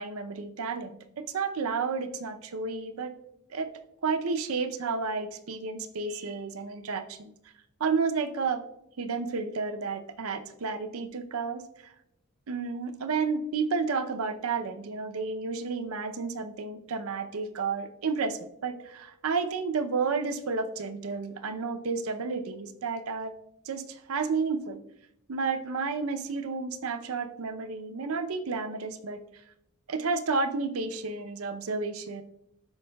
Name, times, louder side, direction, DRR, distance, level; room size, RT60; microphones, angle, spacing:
voice 1, 0.0-3.1 3.5-3.7 4.0-7.3 7.8-8.6 9.0-11.9 12.5-23.3 23.7-24.8 25.3-29.2 29.9-32.2, right 4 dB, 75° right, 8 dB, 0.6 m, -31 dB
12.5 x 4.5 x 2.2 m, 0.80 s
head